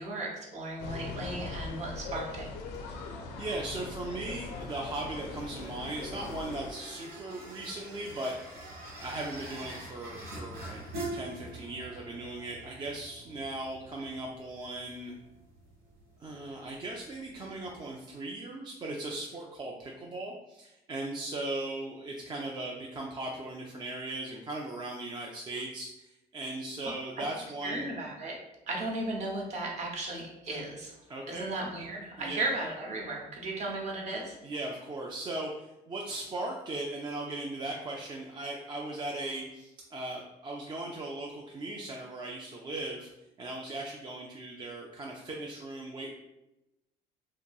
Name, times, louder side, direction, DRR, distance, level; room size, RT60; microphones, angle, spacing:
voice 1, 0.0-2.5 27.6-28.4 28.7-30.9 31.3-34.3, right 2 dB, 45° right, -2 dB, 0.8 m, -35 dB
sound 1, 0.8-6.7, left 3 dB, 85° left, 0.4 m, -40 dB
voice 2, 3.0-8.6 9.0-10.8 11.1-15.1 16.2-27.8 31.1-31.5 32.2-32.5 34.4-43.1 43.4-46.1, right 2 dB, 25° right, -1 dB, 0.3 m, -38 dB
sound 2, 4.4-17.7, right 1 dB, 85° right, 1.3 m, -45 dB
2.8 x 2.6 x 2.3 m, 0.92 s
cardioid pair, 110°, 17 cm